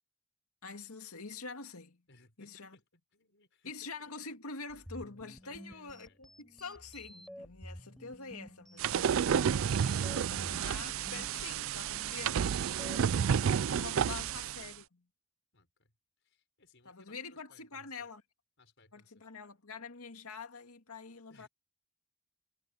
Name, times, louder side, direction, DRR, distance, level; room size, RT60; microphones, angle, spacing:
voice 1, 0.6-2.0 2.4-2.8 3.7-9.3 9.7-12.4 13.7-15.0 16.9-18.2 18.9-21.5, left 4 dB, 85° left, 2.2 m, -46 dB
voice 2, 2.1-2.8 3.1-3.9 5.4-6.2 15.5-15.9 16.2-18.1 18.6-19.2 21.3-21.5, left 2 dB, 55° left, 5.8 m, -64 dB
sound 1, 4.7-13.0, equal, ahead, 6.0 m, -51 dB
sound 2, 8.8-14.7, right 7 dB, 65° right, 0.4 m, -31 dB
head